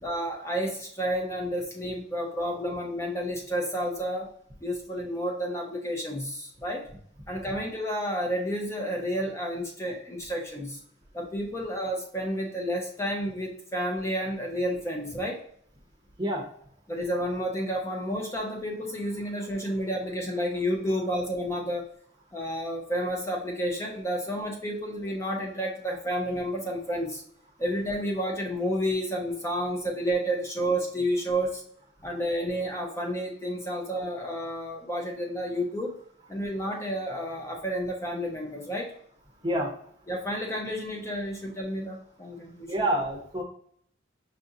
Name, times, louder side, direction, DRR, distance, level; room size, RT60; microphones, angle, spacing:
voice 1, 0.0-4.3 4.6-6.8 7.3-10.8 11.1-15.4 16.9-21.9 22.3-27.2 27.6-31.6 32.0-36.0 36.3-38.9 40.1-42.7, equal, 15° left, 0 dB, 0.6 m, -30 dB
voice 2, 42.7-43.4, right 1 dB, 25° right, 1 dB, 0.7 m, -27 dB
5.4 x 2.6 x 2.6 m, 0.63 s
head